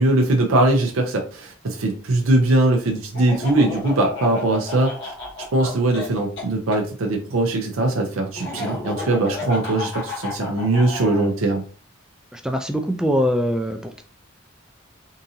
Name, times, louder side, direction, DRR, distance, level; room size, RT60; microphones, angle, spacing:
voice 1, 0.0-5.1 5.5-11.6, right 2 dB, 85° right, 2 dB, 0.6 m, -21 dB
Laughter, 3.1-6.8 8.3-11.3, left 3 dB, 60° left, 1.1 m, -32 dB
voice 2, 12.3-14.0, equal, 5° right, 5 dB, 0.3 m, -23 dB
3.7 x 2.7 x 2.7 m, 0.39 s
head